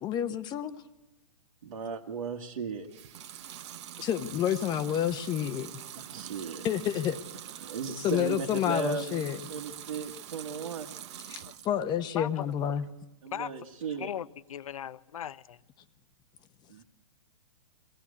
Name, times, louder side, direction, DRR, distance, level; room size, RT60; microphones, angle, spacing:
voice 1, 0.0-0.7 4.0-5.7 6.6-7.2 8.0-9.4 11.3-12.8, left 10 dB, 25° left, 11 dB, 0.9 m, -29 dB
voice 2, 1.6-2.9 6.0-6.7 7.6-10.9 13.2-14.1 16.7-16.8, right 5 dB, 70° right, 0 dB, 1.9 m, -36 dB
Water tap faucet / Sink (filling or washing) / Liquid, 2.8-11.8 12.2-12.9, right 11 dB, 50° right, 1.3 m, -44 dB
voice 3, 12.2-12.5 13.3-13.5 14.0-15.6, left 10 dB, 75° left, 16 dB, 0.8 m, -38 dB
22.0 x 17.0 x 8.5 m, 1.0 s
hypercardioid pair, 135°, 18 cm